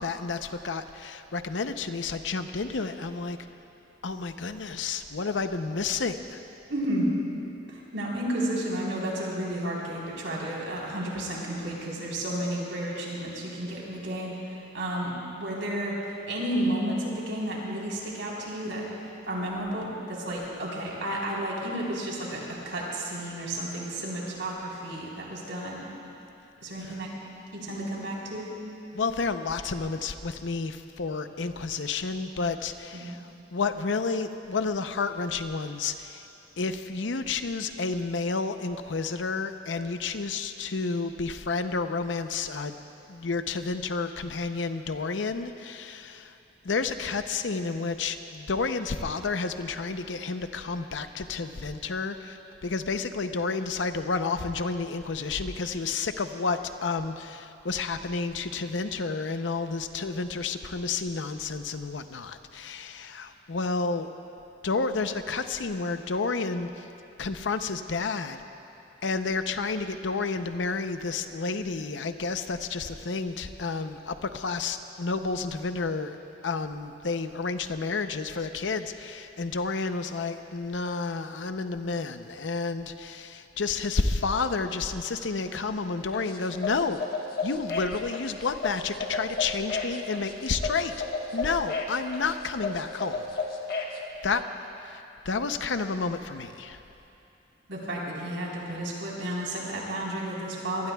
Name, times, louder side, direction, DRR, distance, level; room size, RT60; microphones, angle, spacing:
voice 1, 0.0-3.4 4.0-6.4 26.8-26.9 28.9-36.2 36.6-42.8 43.1-46.3 46.6-64.1 64.6-66.8 67.2-68.4 69.0-76.2 76.4-87.0 87.4-90.9 91.3-93.4 94.2-94.4 94.8-96.8, left 4 dB, 80° left, 9 dB, 0.7 m, -30 dB
voice 2, 6.7-7.1 7.7-18.8 19.3-25.8 26.6-27.1 27.5-28.5 32.9-33.1 97.7-100.9, right 1 dB, 80° right, -4 dB, 3.9 m, -32 dB
sound 1, 86.1-94.0, left 4 dB, 55° left, 1.4 m, -33 dB
24.0 x 19.0 x 2.3 m, 2.9 s
head